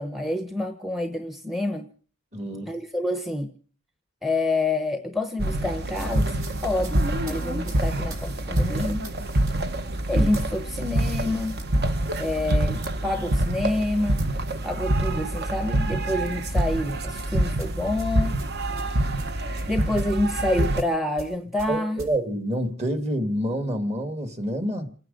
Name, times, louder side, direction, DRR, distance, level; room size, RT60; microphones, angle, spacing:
voice 1, 0.0-1.9 2.7-3.5 4.2-6.4 6.6-9.1 10.1-11.6 12.2-14.2 14.6-18.4 19.7-22.0, left 2 dB, ahead, 0.8 m, -28 dB
voice 2, 2.3-2.7 21.7-24.9, right 1 dB, 30° right, 1.8 m, -27 dB
Queen Elizabeth II Funeral Procession Windsor, 5.4-20.8, right 1 dB, 50° right, 1.0 m, -26 dB
sound 1, 5.9-15.5 15.8-16.1 17.2-22.2, right 2 dB, 65° right, 4.5 m, -47 dB
28.0 x 9.6 x 5.2 m
head